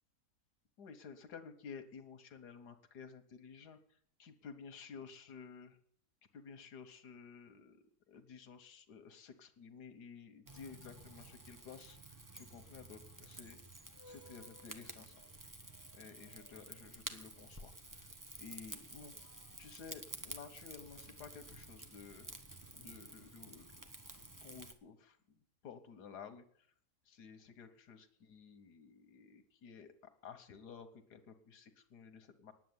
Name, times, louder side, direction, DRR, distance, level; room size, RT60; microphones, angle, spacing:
voice 1, 0.8-5.8 6.3-13.6 14.1-15.3 15.9-18.1 18.4-19.2 19.6-22.3 22.7-23.9 24.1-26.7 27.1-32.5, left 6 dB, 85° left, 7 dB, 1.7 m, -53 dB
Rain / Fire, 10.5-24.7, right 1 dB, 15° right, 0.9 m, -52 dB
10.0 x 7.7 x 9.5 m, 0.62 s
omnidirectional pair, 1.7 m